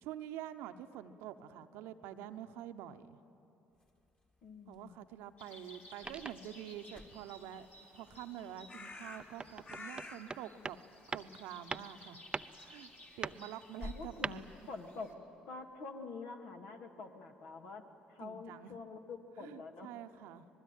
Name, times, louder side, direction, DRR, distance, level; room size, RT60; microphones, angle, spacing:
voice 1, 0.0-3.2 4.7-7.7 7.9-10.8 11.1-12.2 12.6-12.9 13.2-14.5 18.2-18.7 19.4-20.5, right 11 dB, 70° right, 9 dB, 1.0 m, -47 dB
sound 1, 3.7-14.8, left 2 dB, 25° left, 2.5 m, -57 dB
voice 2, 4.4-5.0 13.8-15.1 15.5-17.8 18.1-19.9, left 4 dB, 65° left, 3 dB, 2.4 m, -47 dB
sound 2, 5.4-15.1, left 2 dB, 40° left, 3.5 m, -54 dB
sound 3, 6.0-6.6 8.8-10.9 11.1-11.4 11.7-12.0 12.3-12.6 13.2-13.5 14.2-14.4, right 4 dB, 25° right, 0.6 m, -42 dB
26.0 x 20.5 x 9.2 m, 2.8 s
hypercardioid pair, 55°, 4 cm